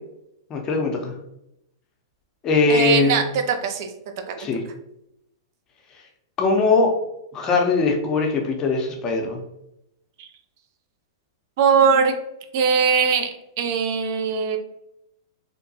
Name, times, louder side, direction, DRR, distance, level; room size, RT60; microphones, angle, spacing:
voice 1, 0.5-1.1 2.4-3.2 4.4-4.6 6.4-6.9 7.3-9.4, left 3 dB, 30° left, 2 dB, 0.6 m, -20 dB
voice 2, 2.7-3.9 4.3-4.4 10.2-10.3 11.6-12.1 12.5-13.3 13.6-14.6, right 6 dB, 55° right, 6 dB, 0.4 m, -20 dB
2.7 x 2.2 x 2.7 m, 0.83 s
hypercardioid pair, 115°, 2 cm